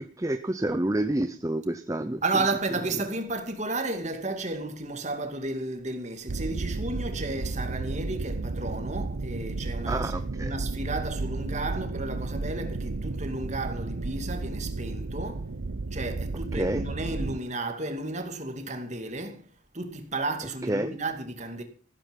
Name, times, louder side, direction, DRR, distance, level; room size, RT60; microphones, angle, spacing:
voice 1, 0.0-2.2 9.9-10.6 16.5-16.9 20.7-20.9, right 1 dB, 15° right, 0.7 m, -29 dB
voice 2, 2.2-10.1 10.4-15.5 15.9-19.5 19.7-21.6, right 2 dB, 35° right, 2.5 m, -33 dB
sound 1, 6.3-17.4, right 3 dB, 75° right, 0.8 m, -33 dB
15.0 x 14.0 x 5.4 m
head